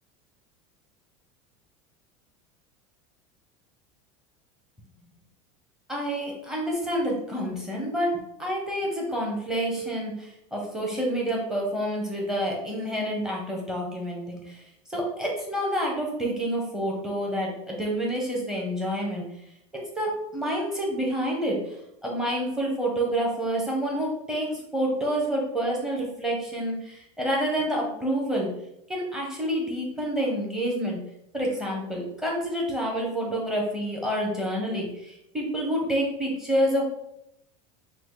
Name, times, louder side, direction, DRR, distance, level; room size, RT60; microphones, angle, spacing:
voice 1, 5.9-14.6 14.9-19.2 20.0-21.6 22.0-28.5 28.9-31.0 31.3-36.8, equal, 5° right, -2 dB, 0.9 m, -28 dB
5.6 x 2.2 x 3.8 m, 0.78 s
supercardioid pair, 160°, 17 cm